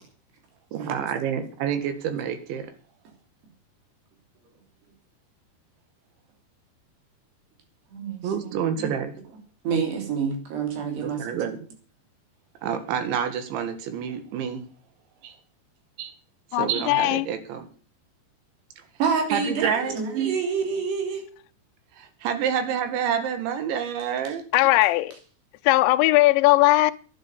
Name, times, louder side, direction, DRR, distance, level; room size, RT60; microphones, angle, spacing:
voice 1, 0.7-2.7 8.2-9.1 11.0-11.5 12.6-14.7 15.2-15.3 16.0-16.1 16.6-17.7 19.3-20.0 22.0-24.4, right 8 dB, 85° right, 4.2 m, -28 dB
voice 2, 7.9-8.9 9.7-11.3 19.0-21.3, right 6 dB, 65° right, 5.2 m, -27 dB
voice 3, 16.5-17.3 24.5-25.2 25.7-26.9, left 19 dB, 85° left, 3.1 m, -19 dB
11.5 x 10.0 x 8.2 m
omnidirectional pair, 5.1 m